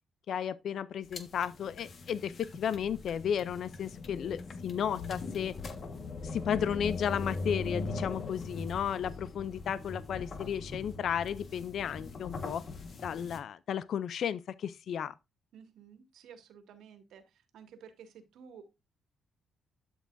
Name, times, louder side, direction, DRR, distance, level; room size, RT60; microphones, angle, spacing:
voice 1, 0.3-5.5 6.2-12.6 13.0-15.1, left 8 dB, 65° left, 0.5 m, -34 dB
sound 1, 1.0-13.4, left 3 dB, 50° left, 1.4 m, -41 dB
voice 2, 15.5-18.6, right 7 dB, 75° right, 2.0 m, -53 dB
12.0 x 6.2 x 2.6 m
cardioid pair, 90°, 0 cm